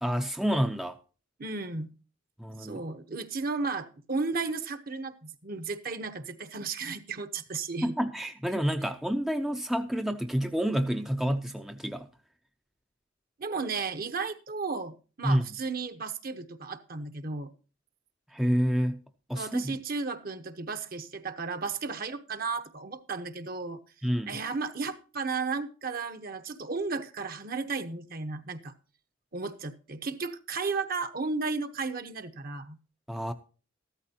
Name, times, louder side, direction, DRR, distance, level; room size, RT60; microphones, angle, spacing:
voice 1, 0.0-1.0 2.4-2.8 7.8-12.1 15.2-15.5 18.3-19.0 19.3-19.8 24.0-24.4 33.1-33.3, equal, ahead, 6 dB, 0.5 m, -28 dB
voice 2, 1.4-1.9 2.6-7.9 13.4-17.5 19.3-23.8 24.3-28.7 29.3-32.8, right 4 dB, 45° right, 10 dB, 1.0 m, -34 dB
14.0 x 12.5 x 2.9 m, 0.36 s
head